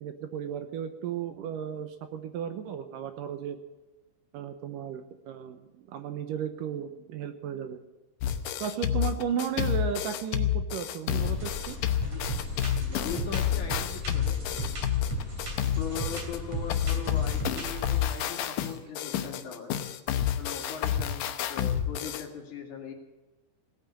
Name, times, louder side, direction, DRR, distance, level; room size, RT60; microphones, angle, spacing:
voice 1, 0.0-3.6 4.3-7.8 8.6-11.8, right 8 dB, 75° right, 9 dB, 2.3 m, -34 dB
sound 1, 8.2-16.4 16.7-22.2, left 10 dB, 70° left, 2.2 m, -29 dB
sound 2, 11.2-18.1, left 4 dB, 40° left, 3.5 m, -38 dB
sound 3, 11.4-11.8 12.0-18.3 18.6-18.7 19.0-19.2, right 4 dB, 45° right, 3.6 m, -38 dB
voice 2, 12.9-14.4 15.8-19.7 20.4-22.9, left 6 dB, 55° left, 2 dB, 3.5 m, -40 dB
17.5 x 9.0 x 8.4 m, 1.1 s
omnidirectional pair, 4.4 m